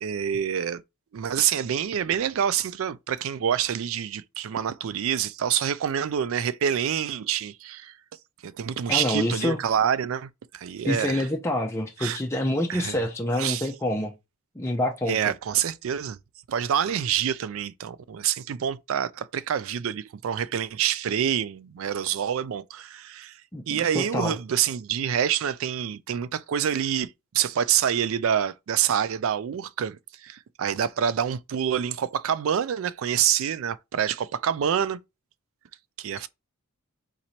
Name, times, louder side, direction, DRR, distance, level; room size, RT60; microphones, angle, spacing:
voice 1, 0.0-0.8 1.1-8.0 8.4-11.3 12.0-12.2 12.7-13.0 13.4-13.7 15.1-16.2 16.5-35.0 36.0-36.3, right 9 dB, 65° right, 0.3 m, -27 dB
voice 2, 8.9-9.6 10.8-14.1 14.6-15.2 23.5-24.4, left 1 dB, 10° left, 0.5 m, -27 dB
3.9 x 3.0 x 4.2 m
head